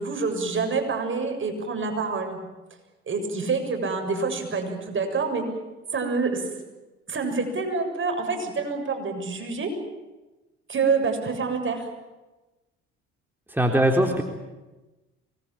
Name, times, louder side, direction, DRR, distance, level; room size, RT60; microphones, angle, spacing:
voice 1, 0.0-2.4 3.1-5.4 5.9-6.5 7.1-9.7 10.7-11.9, right 4 dB, 40° right, 4 dB, 7.2 m, -27 dB
voice 2, 13.5-14.2, right 1 dB, 5° right, 2 dB, 3.7 m, -21 dB
24.5 x 20.5 x 9.0 m, 1.1 s
hypercardioid pair, 65°, 31 cm